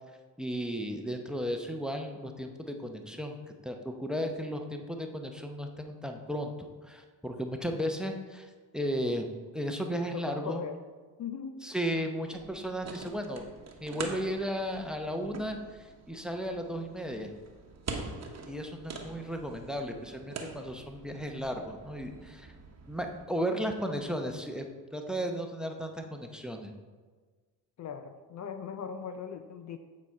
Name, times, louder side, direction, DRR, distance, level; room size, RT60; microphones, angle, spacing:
voice 1, 0.4-3.4 3.6-9.3 9.5-10.6 11.6-13.4 13.8-17.3 18.5-22.5 22.9-24.6 24.9-26.7, equal, ahead, 4 dB, 0.7 m, -35 dB
voice 2, 10.1-10.8 11.2-11.7 27.8-29.8, left 6 dB, 45° left, 8 dB, 0.5 m, -39 dB
sound 1, 12.3-23.3, right 4 dB, 40° right, 1.1 m, -45 dB
8.6 x 4.2 x 4.6 m, 1.4 s
cardioid pair, 85°, 40 cm